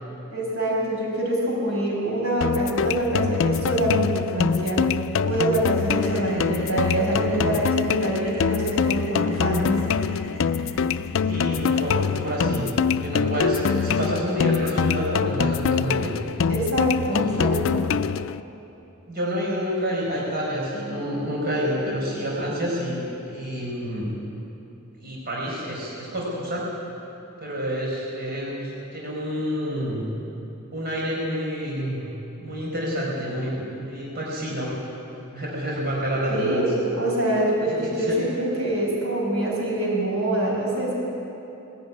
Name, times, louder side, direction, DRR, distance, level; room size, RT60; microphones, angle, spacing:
voice 1, 0.3-4.9 5.2-9.8 16.5-17.9 36.3-41.0, right 1 dB, 85° right, -3 dB, 6.5 m, -25 dB
sound 1, 2.4-18.4, left 6 dB, 65° left, 0.4 m, -24 dB
sound 2, 5.8-16.0, equal, 65° right, 6.4 m, -38 dB
voice 2, 11.3-16.1 17.1-17.5 19.1-24.1 25.0-26.6 27.4-30.1 30.7-32.1 32.4-34.7 35.3-36.6 37.6-38.2, equal, 45° right, -4 dB, 5.0 m, -28 dB
20.0 x 15.5 x 9.6 m, 2.9 s
head